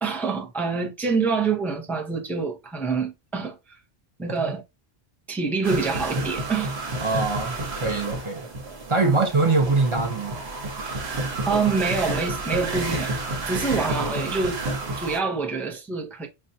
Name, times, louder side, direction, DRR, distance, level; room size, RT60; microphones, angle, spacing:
voice 1, 0.0-3.6 4.2-4.6 5.3-6.7 9.0-9.2 11.5-13.1 13.5-14.6 15.0-16.3, right 4 dB, ahead, 0.4 m, -26 dB
sound 1, 5.6-15.2, right 2 dB, 80° right, 1.2 m, -30 dB
voice 2, 7.0-8.5 8.9-10.4, right 3 dB, 35° right, 0.7 m, -23 dB
5.3 x 2.3 x 2.6 m
omnidirectional pair, 1.0 m